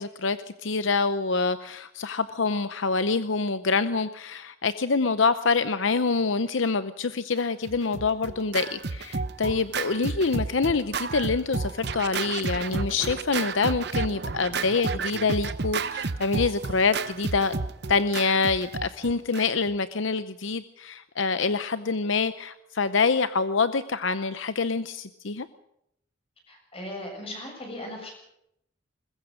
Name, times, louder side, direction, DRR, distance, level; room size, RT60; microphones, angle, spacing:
voice 1, 0.0-17.5 17.9-25.5, left 4 dB, 75° left, 12 dB, 0.7 m, -26 dB
Scratching (performance technique), 7.6-19.7, right 4 dB, 55° right, 0.8 m, -32 dB
voice 2, 26.5-28.1, left 1 dB, 30° left, 2 dB, 7.3 m, -38 dB
21.5 x 20.5 x 6.4 m, 0.79 s
head